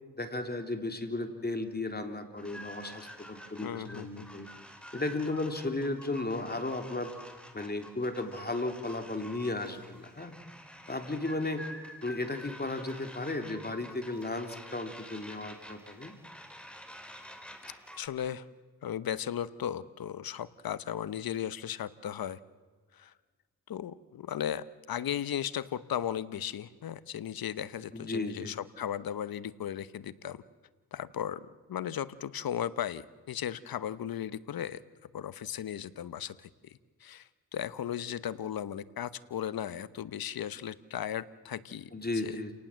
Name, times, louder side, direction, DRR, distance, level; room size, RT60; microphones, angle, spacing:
voice 1, 0.2-4.5 4.9-7.1 7.5-10.4 10.9-11.6 12.0-16.1 27.9-28.5 41.9-42.5, left 2 dB, 25° left, 6 dB, 3.6 m, -35 dB
sound 1, 2.4-18.1, equal, 5° left, 4.6 m, -49 dB
voice 2, 3.6-4.3 17.9-18.5 18.8-22.4 22.9-23.1 23.7-30.4 30.9-42.4, left 10 dB, 75° left, 16 dB, 1.1 m, -36 dB
30.0 x 18.5 x 7.6 m, 1.5 s
cardioid pair, 55°, 36 cm